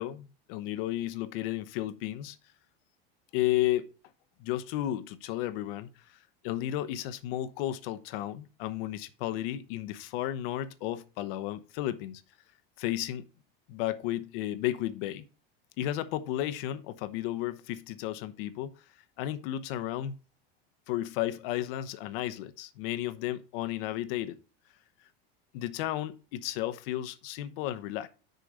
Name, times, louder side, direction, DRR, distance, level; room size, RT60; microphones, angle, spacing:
voice 1, 0.0-2.4 3.3-3.9 4.4-6.2 6.4-12.2 12.8-13.3 13.7-15.2 15.8-18.7 19.2-20.1 20.9-24.4 25.5-28.1, left 13 dB, 70° left, 1.0 m, -33 dB
6.6 x 4.7 x 6.6 m
supercardioid pair, 130°, 29 cm